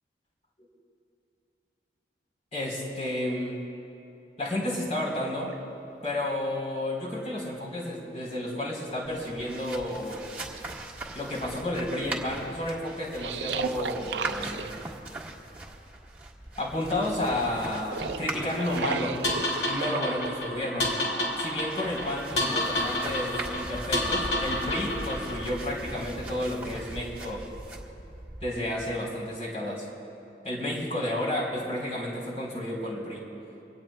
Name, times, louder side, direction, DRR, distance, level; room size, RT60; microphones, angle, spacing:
voice 1, 2.5-3.6 4.4-5.5 6.0-10.2 11.1-14.7 16.6-19.2 19.7-20.9 21.4-27.5 28.4-29.9 30.4-33.3, left 1 dB, 35° left, -3 dB, 3.6 m, -31 dB
sound 1, 5.4-5.6 7.4-7.5 7.9-9.0 9.5-9.6 10.3-11.4 13.2-14.9 17.7-20.3, right 5 dB, 80° right, 0.5 m, -36 dB
sound 2, 9.0-29.0, right 2 dB, 10° right, 1.5 m, -41 dB
sound 3, 19.2-25.5, left 1 dB, 80° left, 2.3 m, -30 dB
24.5 x 18.0 x 2.2 m, 2.8 s
head